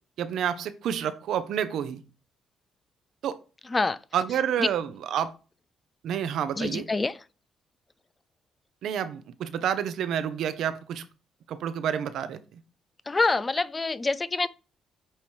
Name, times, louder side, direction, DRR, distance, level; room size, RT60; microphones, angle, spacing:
voice 1, 0.2-2.0 3.2-3.4 4.1-5.3 6.0-6.8 8.8-11.0 11.5-12.6, right 9 dB, 75° right, 0.7 m, -29 dB
voice 2, 6.6-7.2 13.1-14.5, left 3 dB, 25° left, 0.4 m, -26 dB
8.8 x 3.0 x 4.7 m
cardioid pair, 90°, 0 cm